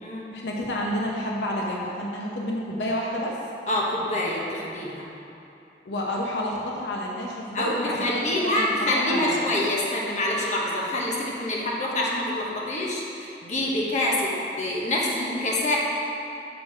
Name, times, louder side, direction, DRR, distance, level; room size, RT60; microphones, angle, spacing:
voice 1, 0.3-3.4 5.8-8.0 8.2-8.7 8.9-9.5, left 1 dB, 80° left, -2 dB, 0.8 m, -29 dB
voice 2, 3.7-5.1 7.5-14.3 14.6-15.8, left 1 dB, 40° left, -4 dB, 1.1 m, -26 dB
6.4 x 6.0 x 4.8 m, 2.8 s
head